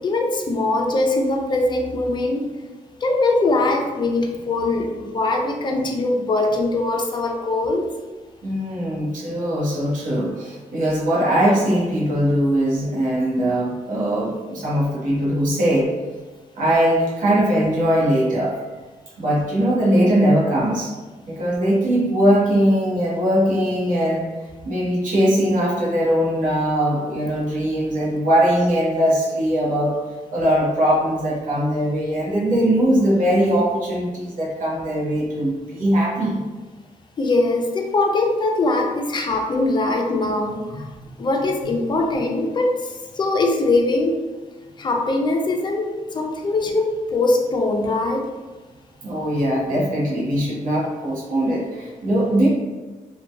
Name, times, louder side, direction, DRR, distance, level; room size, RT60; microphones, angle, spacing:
voice 1, 0.0-2.5 3.0-7.9 37.2-40.8 41.2-44.2 44.8-48.3, left 2 dB, 35° left, 2 dB, 0.4 m, -21 dB
voice 2, 8.4-15.9 16.5-18.6 19.2-20.9 21.3-24.2 24.6-30.0 30.3-36.4 49.0-52.5, equal, 70° right, -5 dB, 0.8 m, -20 dB
2.7 x 2.2 x 2.2 m, 1.3 s
cardioid pair, 100°, 14 cm